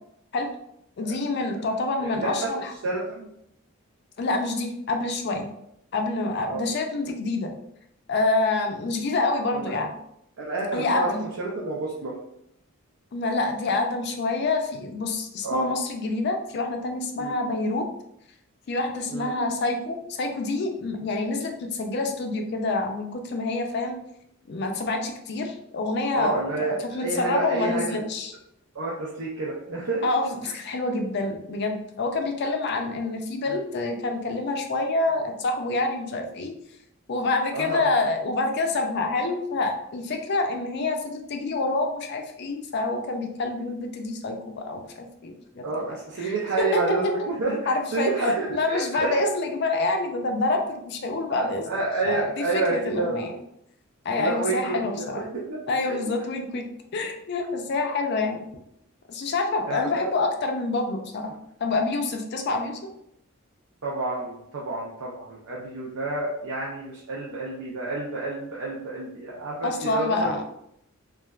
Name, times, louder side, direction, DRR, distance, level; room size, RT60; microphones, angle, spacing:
voice 1, 1.0-2.7 4.2-5.5 5.9-7.5 8.1-9.9 10.7-11.2 13.1-17.9 18.7-24.0 24.5-28.3 30.0-36.5 37.1-47.1 47.7-48.1 48.5-51.7 52.0-53.4 54.0-55.2 55.7-56.6 56.9-58.5 59.1-61.3 61.6-62.9 69.6-70.4, left 3 dB, 50° left, 3 dB, 0.4 m, -27 dB
voice 2, 2.0-2.5 2.8-3.3 6.4-6.7 9.5-9.8 10.4-12.2 15.4-15.7 17.2-17.3 19.1-19.3 26.1-28.0 28.7-30.1 30.4-30.5 33.5-33.6 37.5-37.9 45.6-49.3 51.3-53.3 54.2-55.6 55.9-56.0 57.9-58.0 59.6-60.1 63.8-70.4, right 3 dB, 90° right, -5 dB, 0.6 m, -29 dB
3.1 x 2.3 x 2.3 m, 0.76 s
head